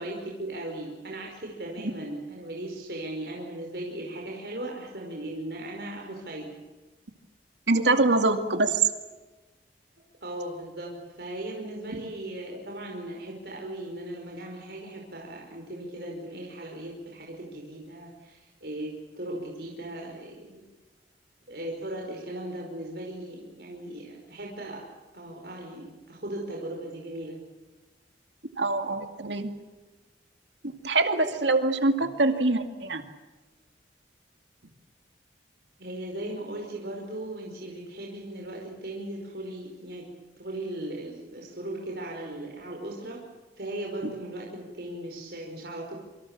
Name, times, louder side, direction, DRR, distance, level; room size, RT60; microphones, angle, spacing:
voice 1, 0.0-6.6 10.2-20.6 21.5-24.8 25.1-27.4 35.8-40.0 40.4-43.2 43.6-45.9, right 1 dB, 65° right, -1 dB, 5.2 m, -37 dB
voice 2, 7.7-8.8 12.0-12.1 28.6-29.5 30.6-33.0, right 2 dB, 85° right, 7 dB, 2.4 m, -24 dB
27.5 x 25.5 x 7.4 m, 1.2 s
head